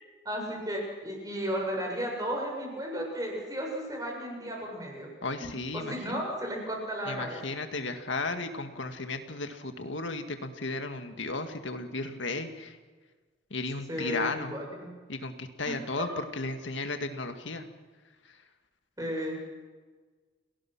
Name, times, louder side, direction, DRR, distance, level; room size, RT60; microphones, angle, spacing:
voice 1, 0.2-5.1 5.7-7.4 13.9-14.9 15.6-15.8 19.0-19.4, equal, 20° right, 0 dB, 7.2 m, -34 dB
voice 2, 5.2-6.0 7.1-12.8 13.5-14.5 15.1-16.1 16.4-17.6, left 3 dB, 80° left, 6 dB, 1.9 m, -34 dB
30.0 x 19.0 x 6.1 m, 1.4 s
head